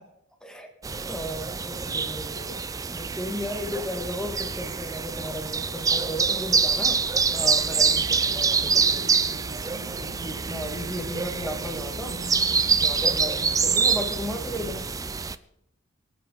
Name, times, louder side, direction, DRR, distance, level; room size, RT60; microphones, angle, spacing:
sound 1, 0.8-15.4, right 5 dB, 15° right, 0.4 m, -26 dB
voice 1, 1.1-2.6 2.9-7.0 7.3-9.1 10.0-12.2 12.5-14.9, equal, 5° left, 4 dB, 1.7 m, -35 dB
sound 2, 7.7-14.8, right 1 dB, 85° right, 1.7 m, -41 dB
24.0 x 8.9 x 4.0 m, 0.84 s
head